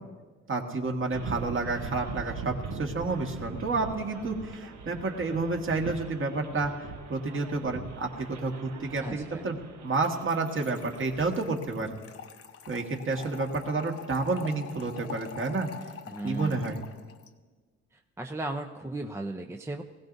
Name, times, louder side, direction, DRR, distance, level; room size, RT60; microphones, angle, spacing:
voice 1, 0.5-9.6 9.8-12.0 12.7-15.7 16.2-16.8, right 3 dB, 40° right, 2 dB, 1.8 m, -30 dB
sound 1, 1.1-11.3, right 5 dB, 70° right, 1.2 m, -42 dB
voice 2, 9.0-9.5 16.1-16.8 18.2-19.8, right 2 dB, 10° right, 3 dB, 0.6 m, -36 dB
Trickle dribble / Fill (with liquid), 9.9-17.3, left 8 dB, 50° left, 0.9 m, -45 dB
20.5 x 16.0 x 2.7 m, 1.4 s
cardioid pair, 90°, 30 cm